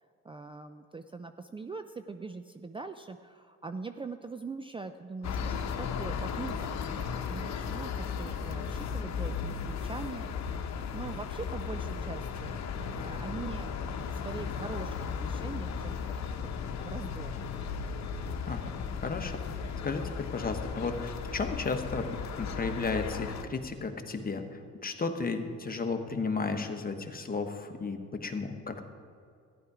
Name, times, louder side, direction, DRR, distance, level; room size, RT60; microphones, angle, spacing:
voice 1, 0.2-7.9 8.2-10.3 10.6-13.7 14.0-16.0 16.2-16.6 16.9-17.4, right 4 dB, 15° right, 8 dB, 0.4 m, -42 dB
sound 1, 5.2-23.4, left 6 dB, 65° left, 1.0 m, -36 dB
voice 2, 19.0-19.4 19.8-22.1 22.4-28.9, left 4 dB, 30° left, 5 dB, 1.2 m, -34 dB
14.0 x 11.0 x 4.9 m, 2.4 s
cardioid pair, 90°, 30 cm